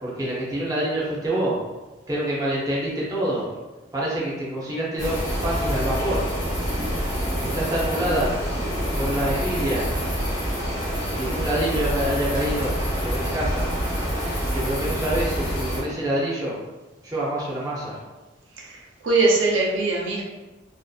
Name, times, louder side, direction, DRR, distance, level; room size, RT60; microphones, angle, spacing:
voice 1, 0.0-1.6 2.1-3.4 3.9-6.2 7.4-8.3 8.9-9.9 11.2-12.7 13.0-13.7 14.5-16.5 17.0-18.0, right 1 dB, 20° right, -6 dB, 0.5 m, -26 dB
sound 1, 5.0-15.8, equal, 40° left, 1.1 m, -26 dB
voice 2, 18.6-20.2, right 3 dB, 85° right, -2 dB, 0.6 m, -22 dB
2.6 x 2.4 x 2.3 m, 1.2 s
head